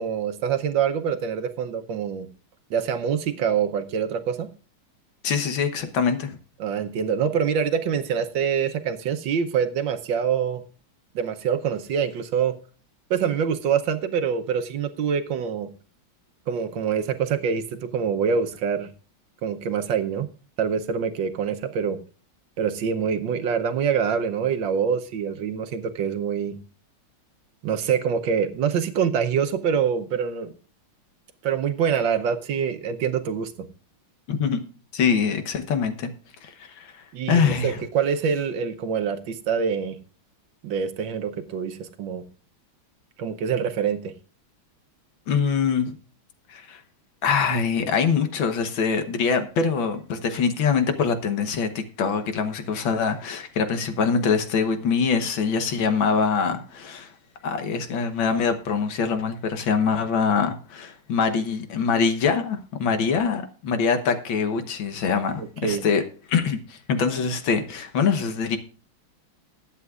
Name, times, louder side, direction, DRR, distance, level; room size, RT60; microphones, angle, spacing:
voice 1, 0.0-2.3 2.7-4.5 6.6-10.6 11.1-12.6 13.1-15.7 16.5-18.9 19.4-20.3 20.6-22.0 22.6-26.6 27.6-30.5 31.4-33.7 37.1-40.0 40.6-42.2 43.2-44.1 65.4-65.9, right 7 dB, 70° right, 1.5 m, -25 dB
voice 2, 5.2-6.4 34.3-34.6 34.9-36.1 36.4-37.8 45.3-45.9 46.5-46.8 47.2-57.1 57.4-66.0 66.3-68.6, left 5 dB, 70° left, 1.9 m, -24 dB
20.5 x 8.4 x 2.4 m
omnidirectional pair, 2.3 m